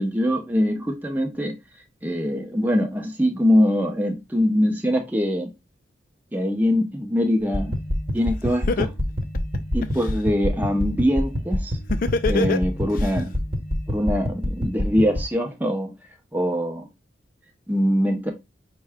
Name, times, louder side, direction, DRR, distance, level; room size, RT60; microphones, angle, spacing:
voice 1, 0.0-1.5 2.0-5.5 6.3-7.7 8.1-8.9 9.7-11.7 12.3-13.3 13.9-15.9 16.3-16.9 17.7-18.3, equal, 10° right, 0.7 m, -23 dB
sound 1, 7.4-15.2, left 1 dB, 30° right, 1.1 m, -27 dB
Laughter, 8.2-8.3 8.7-10.1 11.9-13.1, left 4 dB, 50° left, 0.4 m, -24 dB
5.4 x 2.2 x 3.5 m
head